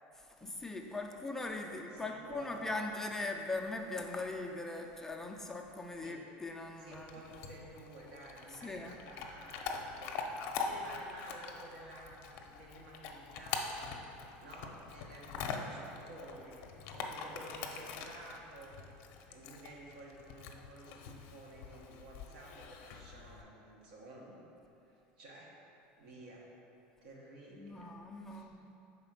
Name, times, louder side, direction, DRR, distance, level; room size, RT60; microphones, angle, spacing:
voice 1, 0.4-7.1 8.6-8.9 27.6-28.5, left 2 dB, 10° left, 2 dB, 0.4 m, -40 dB
voice 2, 1.0-1.3 1.7-2.8 6.0-6.2 6.8-10.1 10.5-13.9 14.4-15.3 15.5-18.8 19.3-24.4 24.8-25.5 26.0-26.5 27.0-28.0 28.2-28.5, right 1 dB, 85° right, -3 dB, 1.3 m, -52 dB
Chewing mastication / Dog, 6.9-23.4, left 5 dB, 60° left, 0.6 m, -44 dB
4.9 x 3.9 x 5.7 m, 2.8 s
supercardioid pair, 140°, 5 cm